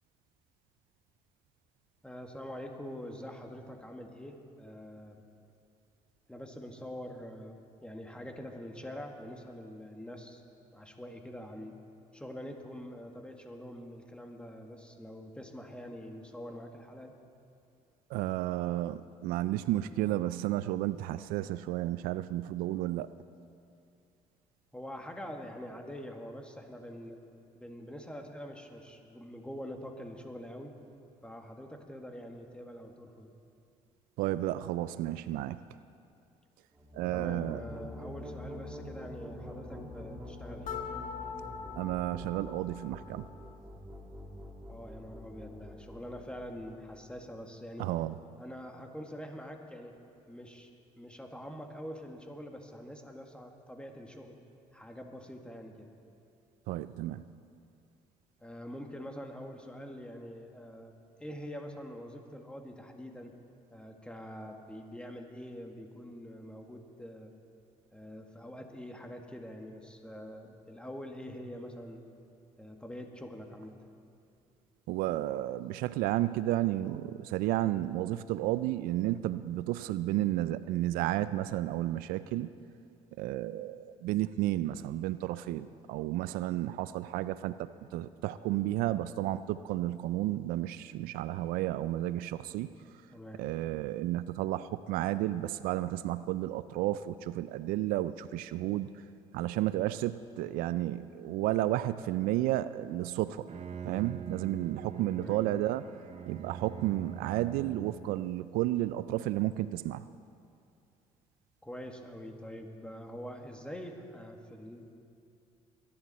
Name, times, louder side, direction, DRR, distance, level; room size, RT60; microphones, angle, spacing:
voice 1, 2.0-5.2 6.3-10.4 10.7-11.8 12.1-17.1 24.7-27.2 27.5-30.7 31.2-33.3 37.1-40.8 44.7-47.9 48.4-49.9 50.3-50.7 51.0-54.4 54.7-55.9 58.4-60.9 61.2-63.3 63.7-67.3 67.9-72.0 72.6-73.8 93.1-93.4 105.2-105.4 111.6-114.9, equal, 5° left, 3 dB, 1.9 m, -45 dB
voice 2, 18.1-23.1 34.2-35.6 36.9-37.6 41.8-43.3 47.8-48.1 56.7-57.3 74.9-82.5 83.2-92.7 93.4-98.9 99.3-103.5 103.8-105.9 106.3-110.0, right 15 dB, 80° right, 15 dB, 0.4 m, -32 dB
sound 1, 36.7-47.4, left 1 dB, 15° right, 2.5 m, -46 dB
sound 2, 40.6-43.6, left 6 dB, 60° left, 1.2 m, -43 dB
Bowed string instrument, 103.3-108.3, right 7 dB, 45° right, 0.9 m, -44 dB
22.5 x 11.0 x 4.3 m, 2.6 s
supercardioid pair, 70°, 15 cm